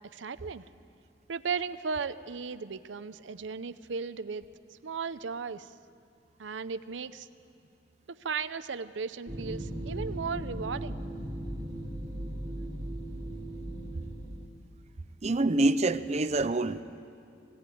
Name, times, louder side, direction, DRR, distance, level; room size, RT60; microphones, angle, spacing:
voice 1, 0.1-0.6 1.3-4.5 4.8-5.7 6.4-7.3 8.1-11.0, right 5 dB, 80° right, 0.6 m, -36 dB
sound 1, 9.3-14.5, right 1 dB, 20° right, 3.0 m, -37 dB
voice 2, 15.2-16.8, right 2 dB, 35° right, 0.6 m, -26 dB
21.0 x 17.0 x 9.2 m
head